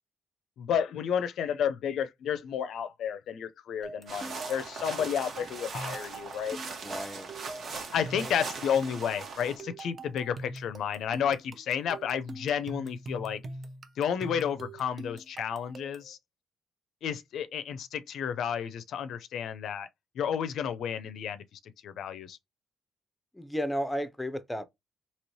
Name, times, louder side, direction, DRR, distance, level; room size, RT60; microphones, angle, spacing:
voice 1, 0.6-6.6 7.9-13.4 14.0-16.2 17.0-19.9 20.2-22.4, left 8 dB, 75° left, 0.4 m, -31 dB
sound 1, 3.8-16.1, right 2 dB, 40° right, 0.5 m, -44 dB
sound 2, 4.1-9.6, right 4 dB, 60° right, 1.0 m, -40 dB
voice 2, 6.8-7.3 8.1-8.3 23.3-24.7, equal, 10° left, 0.4 m, -33 dB
3.0 x 2.8 x 2.7 m
cardioid pair, 90°, 0 cm